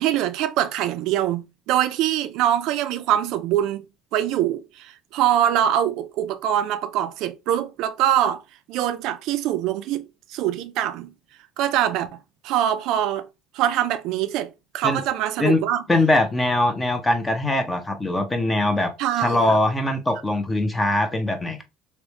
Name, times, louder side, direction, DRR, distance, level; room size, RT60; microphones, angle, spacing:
voice 1, 0.0-3.9 4.1-8.4 8.7-11.1 11.6-12.1 12.4-13.3 13.5-14.5 14.7-15.8 19.0-19.6, right 11 dB, 70° right, 0.3 m, -23 dB
voice 2, 15.9-18.9 19.2-21.6, left 2 dB, 10° left, 0.5 m, -22 dB
3.1 x 2.1 x 2.8 m
cardioid pair, 135°, 0 cm